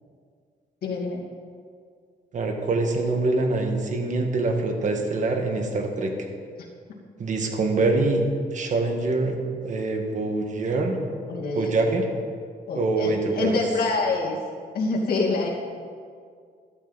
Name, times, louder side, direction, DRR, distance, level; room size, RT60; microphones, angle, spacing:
voice 1, 0.8-1.2 11.3-11.7 12.7-14.4 14.7-15.5, left 3 dB, 70° left, -2 dB, 2.5 m, -26 dB
voice 2, 2.3-6.1 7.2-8.2 8.5-9.4 9.6-11.0 11.5-12.0 12.7-13.6, right 3 dB, 50° right, 3 dB, 1.7 m, -24 dB
13.5 x 12.0 x 4.1 m, 2.1 s
cardioid pair, 135°, 16 cm